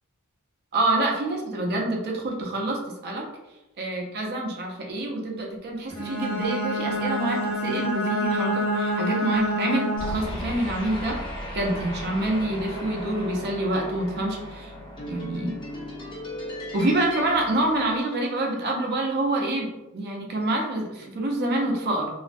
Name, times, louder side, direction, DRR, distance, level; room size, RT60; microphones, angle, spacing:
voice 1, 0.7-2.8 3.0-3.2 3.8-11.2 11.5-14.7 15.1-15.5 16.7-22.1, right 1 dB, 50° right, 0 dB, 0.4 m, -27 dB
Bowed string instrument, 5.9-10.4, right 1 dB, 90° left, 0.7 m, -27 dB
sound 1, 10.0-18.5, equal, 20° left, 0.6 m, -36 dB
2.3 x 2.1 x 2.5 m, 1.0 s
head